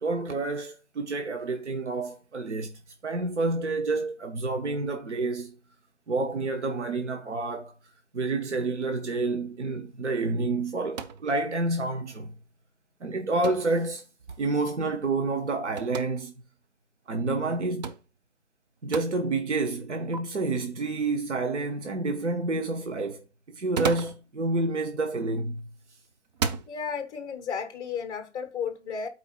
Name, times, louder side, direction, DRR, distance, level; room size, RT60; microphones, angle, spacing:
voice 1, 0.0-2.7 3.0-5.5 6.1-7.7 8.1-12.3 13.0-14.0 14.4-16.3 17.1-17.9 18.8-23.2 23.5-25.6, right 3 dB, 75° right, 1.1 m, -29 dB
sound 1, 10.9-11.3 13.4-13.7 15.8-16.1 17.8-18.1 18.9-19.1 20.1-20.2 23.5-24.2 25.4-25.7 26.3-26.7, right 6 dB, 35° right, 0.7 m, -32 dB
voice 2, 26.7-29.1, left 6 dB, 10° left, 0.9 m, -33 dB
12.0 x 4.6 x 2.3 m
figure-of-eight pair, 130°, 35 cm